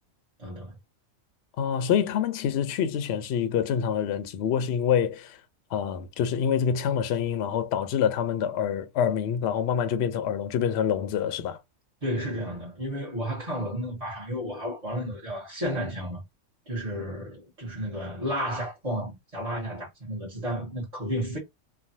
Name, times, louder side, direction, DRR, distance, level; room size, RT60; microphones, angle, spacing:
voice 1, 0.4-0.8 12.0-16.2 16.7-21.4, equal, 30° right, 1.1 m, -32 dB
voice 2, 1.6-5.4 5.7-11.6, left 8 dB, 65° left, 0.7 m, -26 dB
3.1 x 2.2 x 2.6 m
omnidirectional pair, 1.3 m